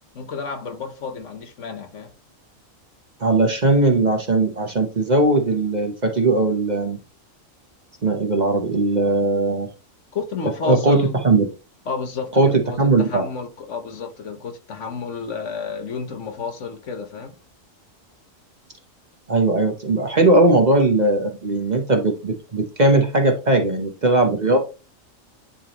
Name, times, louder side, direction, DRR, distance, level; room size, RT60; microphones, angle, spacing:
voice 1, 0.1-2.1 10.1-11.2 11.9-17.4, left 5 dB, 65° left, 1.3 m, -31 dB
voice 2, 3.2-7.0 8.0-9.7 10.7-11.5 12.4-13.2 19.3-24.7, right 2 dB, 40° right, 0.9 m, -19 dB
10.0 x 3.5 x 2.9 m
omnidirectional pair, 1.4 m